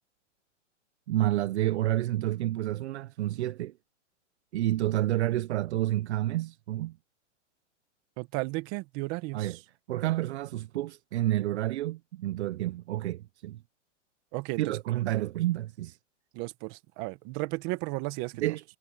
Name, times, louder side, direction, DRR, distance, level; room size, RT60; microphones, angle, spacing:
voice 1, 1.1-3.7 4.5-7.0 9.3-9.6 9.9-13.6 14.6-16.0 18.4-18.6, right 14 dB, 60° right, 0.8 m, -29 dB
voice 2, 8.2-9.6 14.3-14.8 16.3-18.5, right 24 dB, 35° right, 1.3 m, -34 dB
hypercardioid pair, 150°, 37 cm